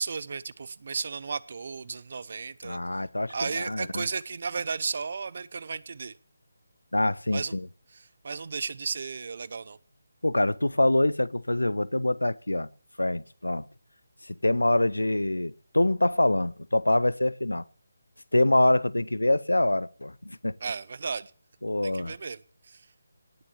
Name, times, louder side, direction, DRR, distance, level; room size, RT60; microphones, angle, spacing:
voice 1, 0.0-2.8 3.3-6.1 7.3-7.5 7.9-9.8 20.6-21.3 21.8-22.4 22.7-22.9, right 5 dB, 50° right, 0.7 m, -34 dB
voice 2, 2.6-4.1 6.9-7.7 10.2-12.7 13.0-13.7 14.2-17.6 18.3-20.6 21.6-22.1, left 1 dB, 90° left, 0.7 m, -25 dB
18.0 x 7.4 x 7.0 m
figure-of-eight pair, 155°, 0 cm